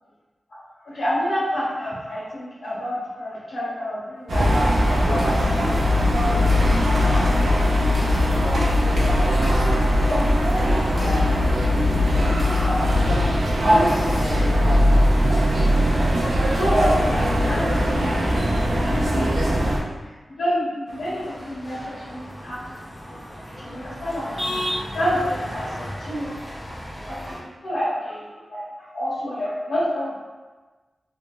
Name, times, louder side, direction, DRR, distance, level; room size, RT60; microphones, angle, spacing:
voice 1, 0.8-5.8 6.1-8.6 8.9-9.7 10.0-11.1 11.7-13.5 13.7-15.0 15.3-16.1 16.5-18.5 18.8-19.8 20.4-22.6 23.1-23.2 23.6-24.6 24.9-26.5 27.1-27.4 27.6-28.2 28.5-30.2, equal, 85° left, -8 dB, 1.3 m, -29 dB
sound 1, 4.3-19.8, equal, 75° right, 0.5 m, -20 dB
sound 2, 5.2-5.4 6.0-6.1 6.5-6.8 7.6-8.2 9.1-9.7 10.5-12.7 13.2-13.3 13.6-14.5, equal, 35° left, 0.8 m, -40 dB
sound 3, 20.9-27.4, equal, ahead, 0.5 m, -34 dB
3.2 x 2.6 x 2.2 m, 1.3 s
wide cardioid pair, 135°, 0 cm